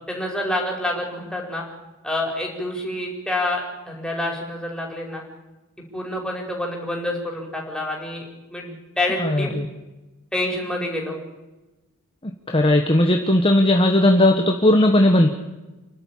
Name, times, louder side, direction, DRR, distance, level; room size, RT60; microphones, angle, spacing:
voice 1, 0.1-1.6 2.0-5.2 5.9-9.5 10.3-11.2, left 1 dB, 5° left, -1 dB, 5.1 m, -27 dB
voice 2, 9.2-9.7 12.2-15.3, left 1 dB, 25° left, 3 dB, 1.3 m, -17 dB
29.0 x 12.0 x 8.6 m, 1.1 s
head